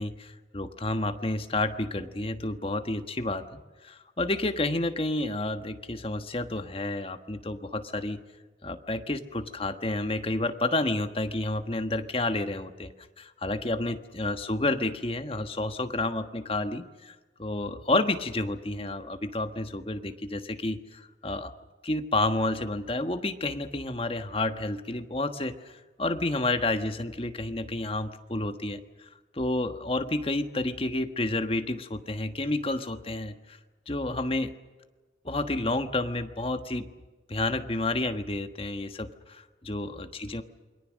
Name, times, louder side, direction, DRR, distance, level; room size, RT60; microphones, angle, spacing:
voice 1, 0.0-3.4 3.8-8.2 8.6-12.9 13.2-21.5 21.8-25.7 26.0-33.6 33.9-34.5 35.2-36.9 37.3-40.4, left 2 dB, 30° left, 8 dB, 1.4 m, -30 dB
28.5 x 23.0 x 6.4 m, 1.3 s
head